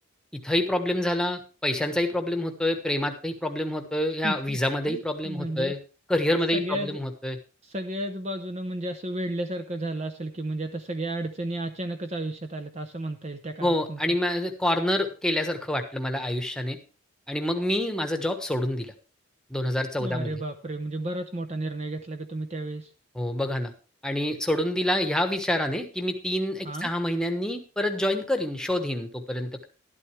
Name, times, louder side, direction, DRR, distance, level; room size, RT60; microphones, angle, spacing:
voice 1, 0.4-5.8 6.1-7.4 13.6-16.8 17.3-18.9 19.5-20.3 23.1-23.7 24.0-29.6, left 1 dB, 5° left, 5 dB, 1.2 m, -27 dB
voice 2, 4.2-4.6 4.9-5.7 6.5-7.0 7.6-14.2 20.0-22.9 26.6-26.9, right 1 dB, 30° right, 7 dB, 0.7 m, -33 dB
12.0 x 12.0 x 3.3 m, 0.35 s
head